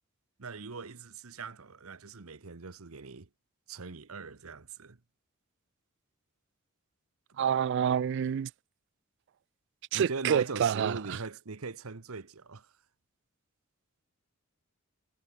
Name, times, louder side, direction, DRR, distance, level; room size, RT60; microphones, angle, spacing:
voice 1, 0.4-3.3 3.7-5.0 9.9-12.7, right 4 dB, 90° right, 1.1 m, -40 dB
voice 2, 7.4-8.5 9.9-11.2, right 8 dB, 55° right, 0.3 m, -28 dB
head